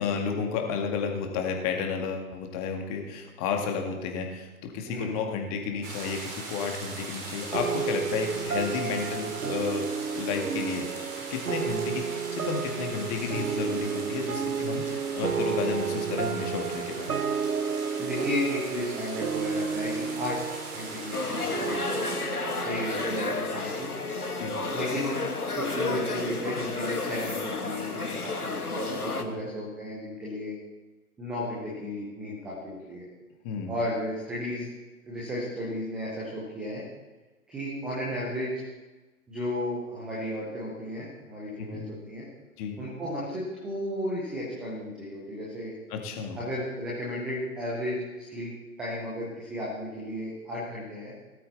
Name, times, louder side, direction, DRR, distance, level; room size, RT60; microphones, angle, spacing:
voice 1, 0.0-9.9 10.1-12.0 12.3-17.1 24.4-24.5 29.2-29.5 33.4-33.8 41.6-41.9 42.6-42.8 45.9-46.4, left 5 dB, 25° left, 3 dB, 2.1 m, -32 dB
sound 1, 5.8-22.2, right 3 dB, 20° right, 2.8 m, -40 dB
sound 2, 7.5-24.3, right 6 dB, 75° right, 0.8 m, -32 dB
voice 2, 18.0-21.9 22.6-23.9 24.7-25.2 25.5-30.5 31.2-33.1 33.7-34.7 35.1-36.8 37.5-38.5 39.3-42.2 42.8-45.8 46.4-48.5 48.8-51.1, left 1 dB, ahead, -5 dB, 0.5 m, -34 dB
sound 3, 21.1-29.2, left 3 dB, 85° left, 1.7 m, -32 dB
18.0 x 12.5 x 4.0 m, 1.2 s
figure-of-eight pair, 125°, 44 cm